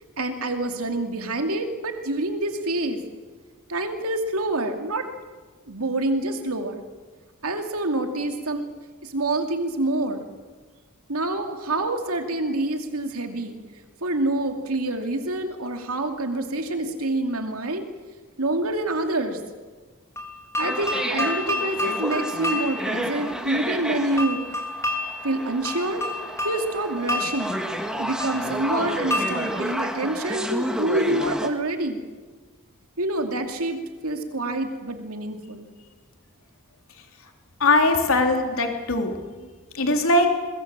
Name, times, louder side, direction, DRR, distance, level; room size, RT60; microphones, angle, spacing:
voice 1, 0.2-3.0 3.7-5.1 5.7-6.8 7.4-8.7 9.0-10.2 11.1-13.6 14.0-17.9 18.4-19.4 20.6-24.4 25.2-26.1 26.4-27.5 28.0-32.0 33.0-33.8 34.0-35.7, right 2 dB, 85° right, 5 dB, 2.7 m, -27 dB
sound 1, 20.2-31.0, left 2 dB, 15° left, 2.9 m, -31 dB
sound 2, 20.6-31.5, equal, 5° right, 1.7 m, -31 dB
voice 2, 37.6-39.2 39.7-40.3, left 2 dB, 70° left, 4 dB, 3.4 m, -20 dB
22.5 x 22.0 x 7.5 m, 1.4 s
head